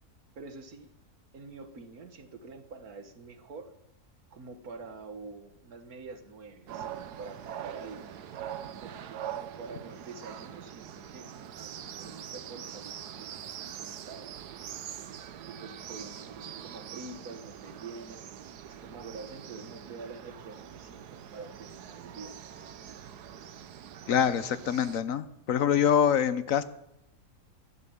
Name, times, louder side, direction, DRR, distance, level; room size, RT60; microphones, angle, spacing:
voice 1, 0.4-0.9 1.3-3.7 4.3-8.0 8.8-14.4 15.3-18.3 18.6-22.4, right 4 dB, 65° right, 9 dB, 1.8 m, -46 dB
sound 1, 6.7-25.0, right 9 dB, 80° right, 1.5 m, -43 dB
voice 2, 24.1-26.6, left 8 dB, 65° left, 15 dB, 1.1 m, -25 dB
15.0 x 12.0 x 7.1 m, 0.80 s
omnidirectional pair, 1.7 m